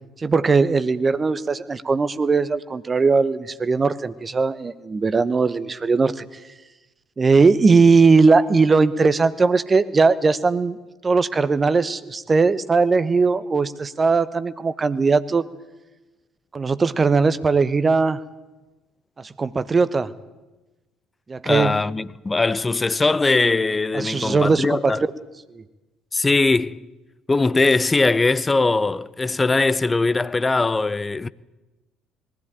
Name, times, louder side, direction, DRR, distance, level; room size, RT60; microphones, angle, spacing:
voice 1, 0.2-6.2 7.2-10.8 11.0-15.4 16.5-18.2 19.2-20.1 21.3-21.8 23.9-24.9 25.5-25.6, right 4 dB, 25° right, 1.0 m, -19 dB
voice 2, 21.4-25.0 26.1-26.8 27.3-31.3, left 3 dB, 20° left, 0.6 m, -20 dB
19.5 x 15.0 x 9.0 m
figure-of-eight pair, 50°, 0 cm